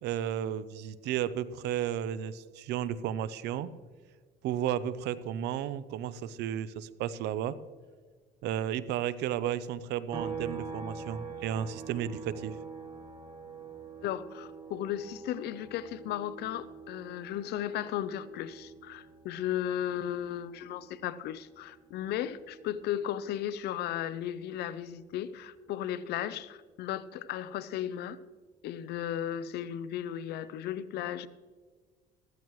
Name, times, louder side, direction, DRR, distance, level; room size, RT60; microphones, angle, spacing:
voice 1, 0.0-3.7 4.4-7.6 8.4-12.5, right 10 dB, 80° right, 0.6 m, -33 dB
sound 1, 10.1-23.7 24.0-26.2, right 5 dB, 30° right, 1.4 m, -46 dB
voice 2, 14.0-28.2 28.6-31.3, left 11 dB, 75° left, 0.6 m, -35 dB
14.0 x 14.0 x 3.1 m
cardioid pair, 110°, 17 cm